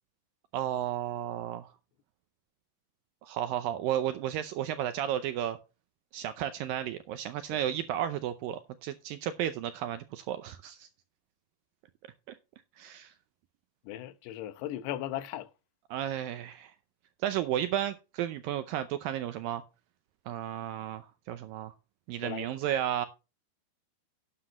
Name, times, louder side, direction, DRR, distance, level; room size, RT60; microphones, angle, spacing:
voice 1, 0.5-1.7 3.2-5.6 6.1-10.9 12.3-12.4 12.8-13.1 15.9-16.7 17.2-19.6 20.3-21.7 22.1-23.1, right 11 dB, 80° right, 2.1 m, -33 dB
voice 2, 13.9-15.5 22.2-22.7, left 13 dB, 90° left, 3.1 m, -37 dB
12.0 x 9.7 x 3.0 m
omnidirectional pair, 4.7 m